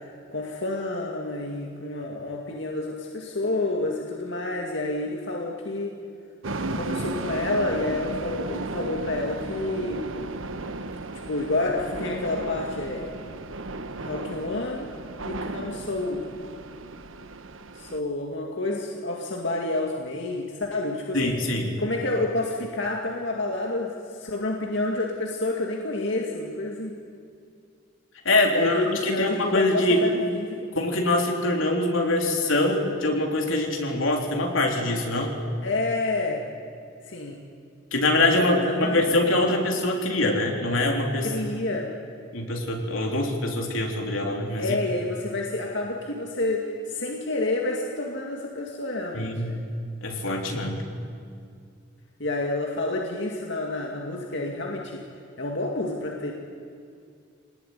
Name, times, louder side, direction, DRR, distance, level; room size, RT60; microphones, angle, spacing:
voice 1, 0.0-5.9 6.7-10.0 11.3-13.1 14.0-14.9 15.2-16.3 17.7-21.4 21.8-26.9 28.5-30.6 35.6-36.5 37.1-37.5 38.4-39.1 41.2-41.9 44.6-49.6 52.2-55.0 55.4-56.3, left 2 dB, 65° left, 0 dB, 2.2 m, -29 dB
sound 1, 6.4-18.0, right 2 dB, 90° right, 1.2 m, -35 dB
voice 2, 21.1-21.8 28.2-30.0 30.8-35.3 37.9-41.3 42.3-44.8 49.1-49.5 50.0-50.8, left 2 dB, 90° left, 1 dB, 3.9 m, -24 dB
25.5 x 19.5 x 9.6 m, 2.3 s
head